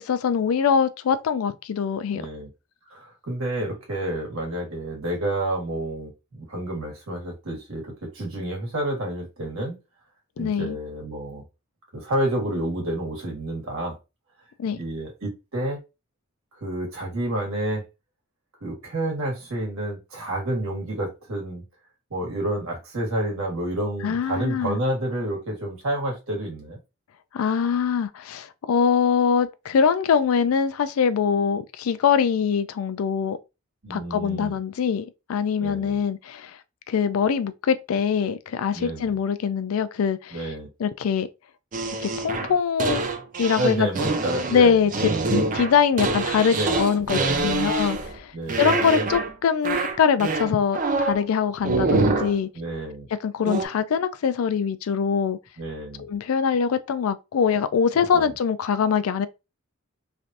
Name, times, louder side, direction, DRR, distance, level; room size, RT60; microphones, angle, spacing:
voice 1, 0.0-2.2 10.4-10.8 14.6-14.8 24.0-24.8 27.3-33.4 33.9-36.6 36.9-40.4 40.8-41.3 42.0-43.0 43.4-43.9 44.5-44.9 45.3-52.5 53.2-55.4 56.0-59.3, left 7 dB, 85° left, 0.4 m, -23 dB
voice 2, 2.1-2.5 2.9-9.8 10.4-11.4 11.9-14.0 14.8-15.8 16.5-17.8 18.6-21.6 22.1-26.8 33.8-34.6 35.6-36.0 38.7-39.2 40.3-40.7 43.6-45.1 46.5-46.8 47.1-47.7 48.3-48.7 52.5-53.1 55.6-56.1 58.1-58.3, right 1 dB, 80° right, 1.6 m, -29 dB
sound 1, 41.7-48.2 48.5-49.3 49.6-51.2 51.6-52.4 53.5-53.7, right 3 dB, 40° right, 0.5 m, -25 dB
3.3 x 2.5 x 2.6 m
head